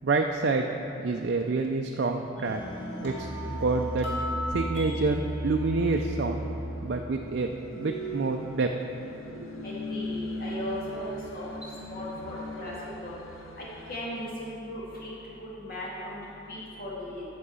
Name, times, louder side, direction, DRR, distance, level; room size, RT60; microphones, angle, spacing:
voice 1, 0.0-0.7 1.0-2.6 3.0-3.3 3.6-4.1 4.5-6.4 6.8-8.7 9.3-9.5, right 3 dB, 55° right, 3 dB, 0.4 m, -27 dB
sound 1, 2.4-14.0, equal, 90° left, 0.9 m, -41 dB
sound 2, 2.4-6.7, equal, 60° left, 2.1 m, -34 dB
voice 2, 9.6-12.7 13.0-13.1 13.6-17.2, left 1 dB, 45° left, -7 dB, 2.4 m, -37 dB
8.7 x 6.4 x 7.0 m, 3.0 s
head